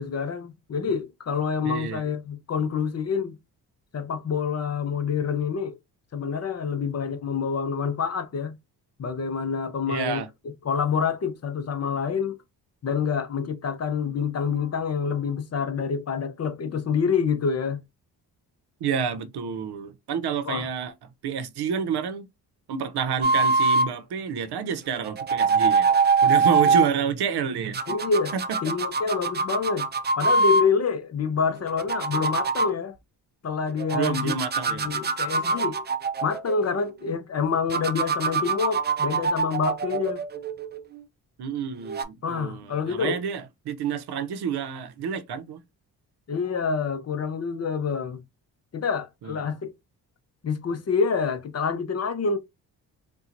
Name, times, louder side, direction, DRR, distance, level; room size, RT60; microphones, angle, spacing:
voice 1, 0.0-3.4 3.9-5.8 6.1-8.5 9.0-10.2 10.6-12.4 12.8-17.8 20.5-20.7 26.7-26.8 27.9-28.4 28.6-29.9 30.2-32.9 33.4-34.3 34.7-35.8 36.2-40.2 42.2-43.2 46.3-48.2 48.7-49.7 50.4-52.4, left 5 dB, 40° left, 0.7 m, -27 dB
voice 2, 1.6-2.0 9.9-10.3 18.8-20.9 21.2-22.2 22.7-25.9 26.2-27.8 28.3-28.4 33.9-34.9 41.4-45.6 49.2-49.4, right 7 dB, 75° right, 0.7 m, -29 dB
sound 1, 23.2-23.9 25.0-26.9 27.7-30.7 31.6-32.7 33.8-36.9 37.7-41.0 41.8-42.0, right 4 dB, 25° right, 0.4 m, -24 dB
4.3 x 2.3 x 2.6 m
cardioid pair, 100°, 40 cm